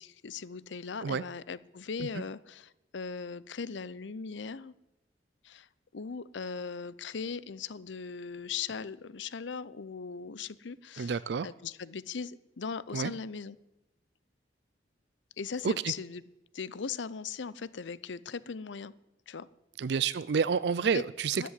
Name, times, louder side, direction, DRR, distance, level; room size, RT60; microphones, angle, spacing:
voice 1, 0.0-4.7 5.4-5.7 5.9-11.2 11.4-13.6 15.4-16.2 16.5-18.9 19.3-19.5 20.9-21.0 21.4-21.5, left 5 dB, 90° left, 19 dB, 0.6 m, -39 dB
voice 2, 11.0-11.5 12.9-13.1 15.6-15.9 19.8-21.5, right 6 dB, 70° right, 18 dB, 0.4 m, -29 dB
13.0 x 8.5 x 9.6 m, 0.95 s
head